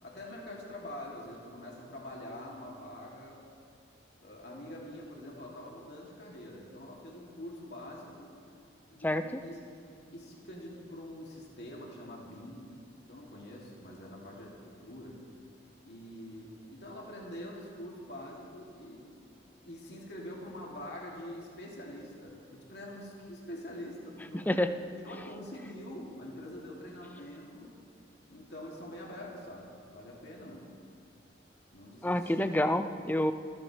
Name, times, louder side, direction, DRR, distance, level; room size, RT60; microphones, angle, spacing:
voice 1, 0.0-3.4 4.2-8.3 8.9-9.6 10.1-12.7 13.1-15.2 15.8-24.7 25.0-27.7 28.3-30.7 31.7-32.3, left 1 dB, 65° left, -3 dB, 3.0 m, -45 dB
voice 2, 9.0-9.4 24.3-24.7 32.0-33.3, left 1 dB, 10° left, 9 dB, 0.5 m, -28 dB
28.5 x 14.0 x 3.5 m, 2.4 s
head